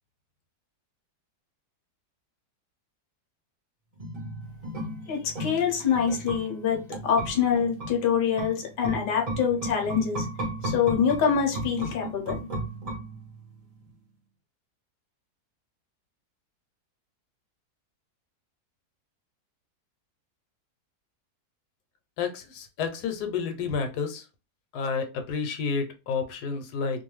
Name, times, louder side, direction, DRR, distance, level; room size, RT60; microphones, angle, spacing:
sound 1, 4.0-13.5 13.8-13.9, right 1 dB, 40° right, 0.5 m, -35 dB
voice 1, 5.1-10.3 10.6-12.4, left 7 dB, 50° left, 0.6 m, -25 dB
voice 2, 22.2-24.3 24.7-27.0, left 5 dB, 85° left, 1.2 m, -30 dB
2.6 x 2.3 x 3.0 m
omnidirectional pair, 1.7 m